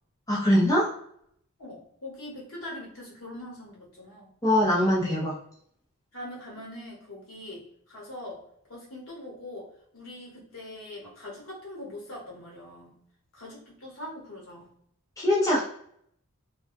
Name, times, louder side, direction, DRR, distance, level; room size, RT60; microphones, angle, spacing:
voice 1, 0.3-0.8 4.4-5.3 15.2-15.6, left 1 dB, 15° left, -6 dB, 0.5 m, -22 dB
voice 2, 1.6-4.3 6.1-8.4 8.7-13.0 13.3-14.7, left 1 dB, 65° left, -4 dB, 1.1 m, -42 dB
2.2 x 2.1 x 2.5 m, 0.67 s
head